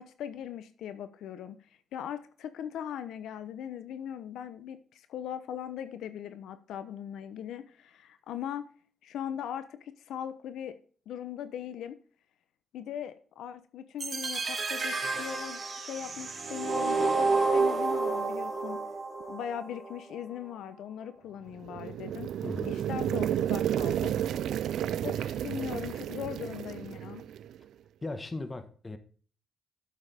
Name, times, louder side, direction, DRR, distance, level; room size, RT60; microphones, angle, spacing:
voice 1, 0.0-1.6 1.9-8.6 9.0-10.7 11.1-12.0 12.7-18.8 19.3-22.3 22.6-24.2 25.0-27.2, left 9 dB, 80° left, 0.8 m, -39 dB
sound 1, 14.0-20.0, right 3 dB, 35° right, 2.0 m, -30 dB
sound 2, 21.5-27.6, right 10 dB, 75° right, 0.4 m, -32 dB
voice 2, 22.4-22.8 28.0-29.0, left 2 dB, 20° left, 1.5 m, -38 dB
12.0 x 7.1 x 3.6 m
cardioid pair, 90°, 0 cm